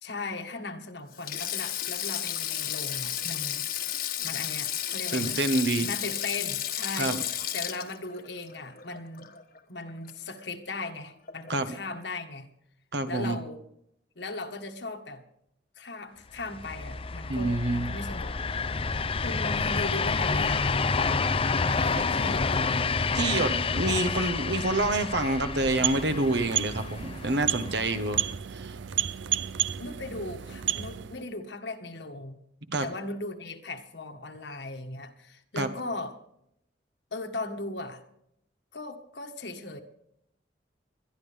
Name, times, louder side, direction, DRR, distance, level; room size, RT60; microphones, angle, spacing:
voice 1, 0.0-3.7 4.2-5.4 5.8-9.3 9.7-12.5 13.1-13.6 14.2-15.2 15.8-18.7 19.2-20.7 21.7-22.8 29.8-32.4 32.8-36.2 37.1-38.0 38.7-39.8, left 2 dB, 70° left, 6 dB, 1.6 m, -38 dB
Sink (filling or washing), 1.1-9.6 9.9-10.1 11.3-11.5, left 11 dB, 55° left, 1.3 m, -33 dB
voice 2, 5.1-5.9 7.0-7.2 11.5-11.7 12.9-13.4 17.3-17.9 22.0-22.3 23.1-28.2 28.5-28.8 32.7-32.9 35.6-35.7, right 2 dB, 65° right, 9 dB, 1.4 m, -27 dB
sound 1, 16.4-28.3, left 4 dB, 30° left, 0.6 m, -29 dB
sound 2, 25.5-31.3, right 10 dB, 90° right, 0.5 m, -32 dB
21.5 x 12.0 x 3.5 m, 0.77 s
head